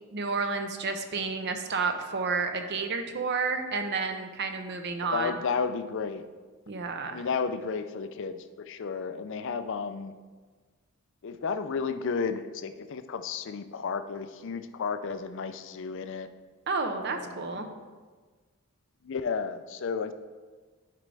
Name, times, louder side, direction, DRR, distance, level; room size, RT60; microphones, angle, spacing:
voice 1, 0.1-5.3 6.7-7.2 16.7-17.7, right 4 dB, 50° right, 6 dB, 0.7 m, -30 dB
voice 2, 5.1-6.3 7.1-10.1 11.2-16.3 17.0-17.9 19.0-20.1, left 5 dB, 60° left, 10 dB, 0.4 m, -33 dB
10.5 x 5.1 x 3.4 m, 1.4 s
head